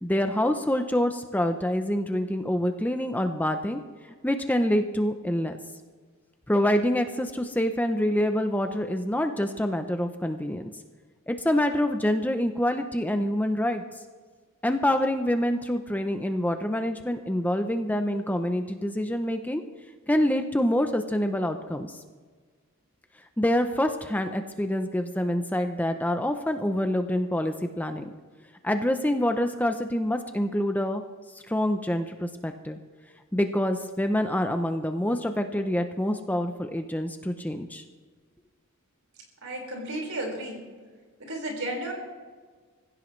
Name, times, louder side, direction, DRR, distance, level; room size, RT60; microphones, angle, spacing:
voice 1, 0.0-3.8 4.2-5.5 6.5-10.7 11.3-13.8 14.6-19.6 20.1-22.0 23.4-28.1 28.6-31.0 31.5-32.8 33.3-37.8, left 1 dB, 5° left, 6 dB, 0.6 m, -26 dB
voice 2, 39.4-40.6 41.2-41.9, right 1 dB, 70° right, 0 dB, 5.0 m, -33 dB
25.0 x 16.0 x 3.2 m, 1.5 s
head